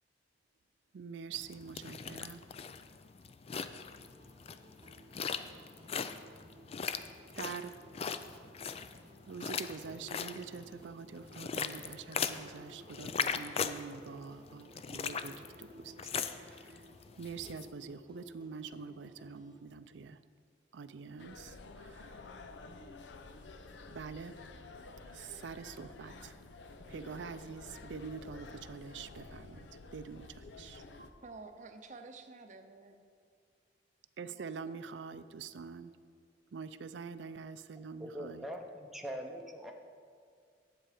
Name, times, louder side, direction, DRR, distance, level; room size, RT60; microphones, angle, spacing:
voice 1, 0.9-2.4 6.9-7.0 7.4-7.8 9.3-15.9 16.2-16.9 17.2-20.2 20.7-22.3 23.9-24.4 25.0-26.4 26.9-30.8 34.2-35.9 36.5-38.5, right 5 dB, 75° right, 13 dB, 0.4 m, -45 dB
sound 1, 1.3-17.7, left 6 dB, 35° left, 0.3 m, -40 dB
sound 2, 3.9-19.6, equal, 25° right, 1.0 m, -57 dB
sound 3, 21.2-31.1, left 3 dB, 80° left, 0.6 m, -51 dB
voice 2, 30.9-33.0 34.4-34.8, right 3 dB, 45° right, 7 dB, 0.7 m, -51 dB
voice 3, 38.0-39.7, equal, ahead, 1 dB, 0.7 m, -42 dB
10.0 x 7.8 x 4.9 m, 2.1 s
head